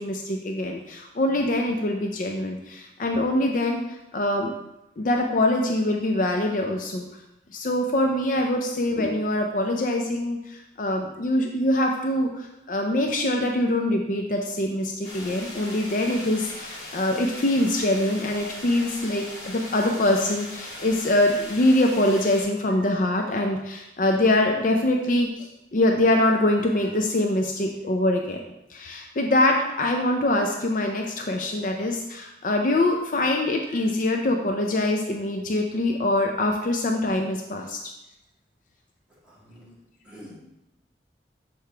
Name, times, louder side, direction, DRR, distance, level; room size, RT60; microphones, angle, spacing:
voice 1, 0.0-3.8 4.1-4.5 5.0-7.1 7.5-28.4 28.7-37.8, left 1 dB, 50° left, 3 dB, 0.5 m, -24 dB
sound 1, 15.0-22.4, left 1 dB, 90° left, 2.2 m, -39 dB
voice 2, 39.1-40.4, equal, 5° right, -9 dB, 2.1 m, -48 dB
6.6 x 4.5 x 3.3 m, 0.90 s
head